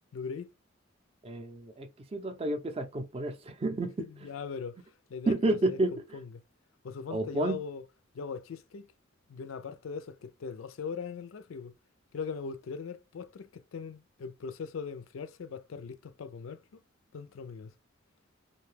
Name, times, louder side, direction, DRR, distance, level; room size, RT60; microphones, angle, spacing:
voice 1, 0.1-0.5 4.0-4.8 5.1-5.8 6.1-6.4 6.8-7.8 8.1-8.9 9.3-11.7 12.1-16.8 17.1-17.7, left 5 dB, 90° left, 0.4 m, -40 dB
voice 2, 1.2-4.0 5.3-5.9 7.1-7.6, right 2 dB, 30° right, 0.4 m, -30 dB
2.6 x 2.2 x 3.2 m
head